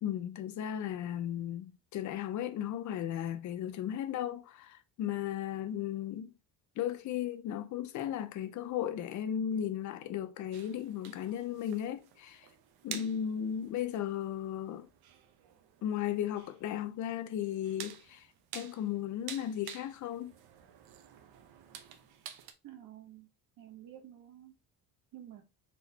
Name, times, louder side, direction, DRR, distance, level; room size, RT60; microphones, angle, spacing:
voice 1, 0.0-6.3 6.8-12.5 12.8-14.9 15.8-18.3 18.5-20.3, left 10 dB, 55° left, 0.5 m, -35 dB
sound 1, 10.5-22.5, right 9 dB, 85° right, 0.8 m, -50 dB
voice 2, 22.6-23.3 23.6-24.5 25.1-25.4, right 12 dB, 65° right, 1.2 m, -50 dB
4.2 x 3.6 x 2.8 m
cardioid pair, 175°, 36 cm